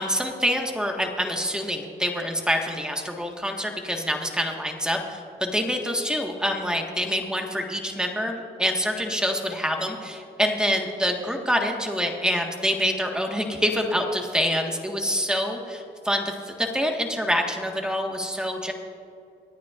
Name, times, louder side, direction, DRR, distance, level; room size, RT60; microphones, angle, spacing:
voice 1, 0.0-18.7, equal, 5° right, 2 dB, 1.6 m, -26 dB
24.5 x 9.4 x 2.5 m, 2.5 s
cardioid pair, 90°, 20 cm